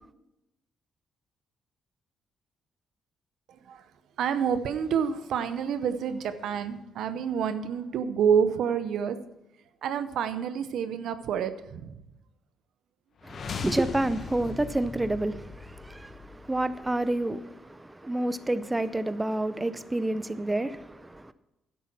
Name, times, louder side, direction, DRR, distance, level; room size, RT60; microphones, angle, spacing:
voice 1, 4.2-9.2 9.8-11.9, right 7 dB, 75° right, 0.8 m, -28 dB
sound 1, 13.2-17.2, left 4 dB, 55° left, 1.3 m, -39 dB
voice 2, 13.2-21.3, right 1 dB, 15° right, 0.5 m, -29 dB
11.0 x 8.0 x 5.9 m
cardioid pair, 90°, 0 cm